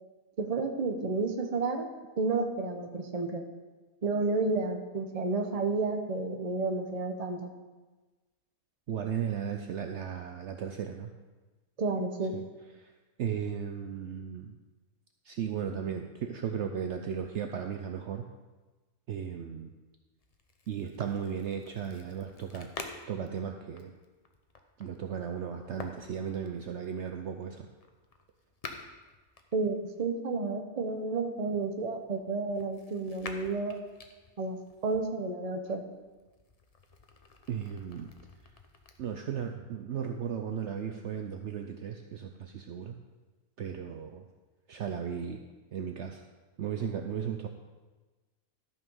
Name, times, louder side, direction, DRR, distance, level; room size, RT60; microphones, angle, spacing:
voice 1, 0.4-1.9 2.2-3.4 4.0-7.5 11.8-12.4 29.5-33.8 34.4-35.8, right 3 dB, 30° right, 5 dB, 0.8 m, -31 dB
voice 2, 8.9-11.1 12.3-12.4 12.8-12.9 13.2-14.5 15.2-18.3 19.1-19.7 20.7-22.7 23.1-23.9 24.8-27.7 37.5-38.1 39.0-43.0 43.6-44.3 44.7-45.4 45.7-46.2 46.6-47.5, right 8 dB, 65° right, 5 dB, 0.8 m, -35 dB
sound 1, 20.2-30.1 30.9-35.0 35.6-39.0, left 3 dB, 35° left, 0.7 m, -50 dB
13.0 x 5.6 x 5.4 m, 1.2 s
omnidirectional pair, 1.5 m